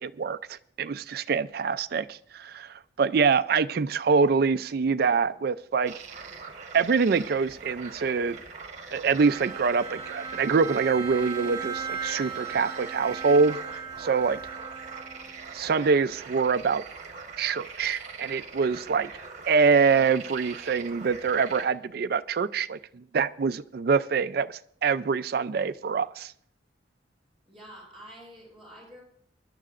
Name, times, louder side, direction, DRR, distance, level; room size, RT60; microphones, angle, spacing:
voice 1, 0.0-5.9 6.7-8.4 8.9-13.6 14.0-14.4 15.5-16.8 17.4-19.1 19.5-26.3, right 5 dB, 55° right, 11 dB, 0.4 m, -25 dB
sound 1, 5.9-21.7, right 4 dB, 40° right, 1.3 m, -42 dB
Bowed string instrument, 9.1-15.6, right 6 dB, 20° right, 1.6 m, -37 dB
voice 2, 27.4-29.0, equal, ahead, -4 dB, 6.6 m, -47 dB
23.5 x 11.5 x 2.5 m, 0.64 s
head